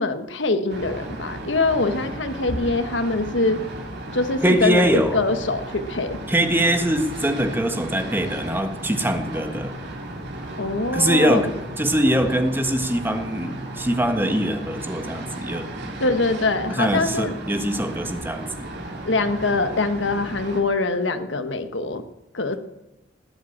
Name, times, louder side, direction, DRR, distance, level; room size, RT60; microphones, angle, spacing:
voice 1, 0.0-3.6 4.1-4.9 5.1-6.2 10.6-11.4 16.0-17.3 19.0-22.0 22.3-22.6, left 3 dB, 75° left, 9 dB, 1.3 m, -23 dB
sound 1, 0.7-20.6, right 1 dB, 60° right, 3.2 m, -35 dB
voice 2, 4.4-5.2 6.3-9.8 10.9-15.7 16.7-18.7, right 1 dB, 10° right, 6 dB, 1.4 m, -22 dB
19.5 x 7.9 x 8.7 m, 0.94 s
head